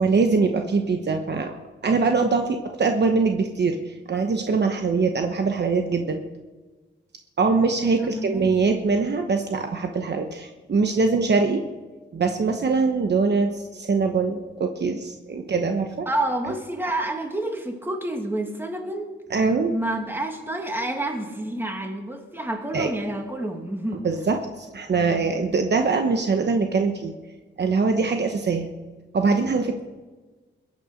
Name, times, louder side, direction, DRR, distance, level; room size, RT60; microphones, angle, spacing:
voice 1, 0.0-1.5 1.8-6.2 7.4-11.6 12.1-16.1 19.3-19.7 22.7-22.9 24.0-27.1 27.6-28.7 29.1-29.8, right 4 dB, 60° right, 4 dB, 1.0 m, -23 dB
voice 2, 8.0-8.5 16.1-19.1 19.7-24.0, right 1 dB, 10° right, 3 dB, 2.0 m, -29 dB
22.0 x 8.6 x 5.1 m, 1.3 s
wide cardioid pair, 110°, 20 cm